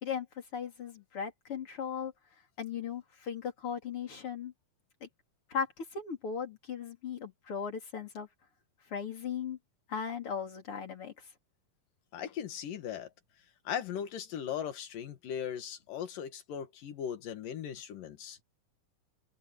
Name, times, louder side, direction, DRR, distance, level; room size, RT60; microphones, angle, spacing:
voice 1, 0.0-2.1 2.6-4.5 5.0-5.1 5.5-8.3 8.9-9.6 9.9-11.1, left 7 dB, 40° left, 4.3 m, -37 dB
voice 2, 12.1-13.1 13.7-18.4, left 9 dB, 85° left, 3.5 m, -38 dB
omnidirectional pair, 3.8 m